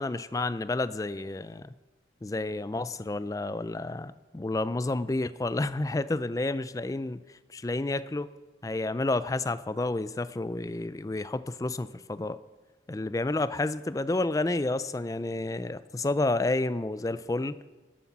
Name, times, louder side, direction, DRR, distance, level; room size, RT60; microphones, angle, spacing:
voice 1, 0.0-1.7 2.2-7.2 7.5-8.3 8.6-12.4 12.9-17.6, left 2 dB, 20° left, 15 dB, 0.3 m, -30 dB
13.5 x 9.4 x 5.9 m, 1.3 s
head